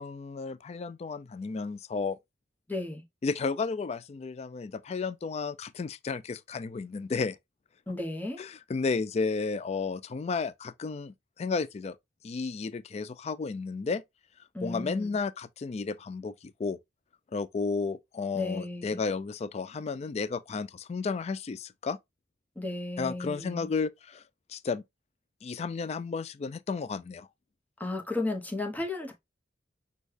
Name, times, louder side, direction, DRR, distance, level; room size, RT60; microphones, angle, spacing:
voice 1, 0.0-2.2 3.2-7.4 8.4-12.0 12.2-14.0 14.6-16.8 17.3-22.0 23.0-24.2 24.5-24.8 25.4-27.3, left 4 dB, 35° left, 0.3 m, -33 dB
voice 2, 2.7-3.0 7.9-8.4 14.5-15.2 18.3-19.0 22.6-23.7 27.8-29.1, left 2 dB, 10° left, 0.9 m, -34 dB
6.3 x 2.3 x 3.3 m
head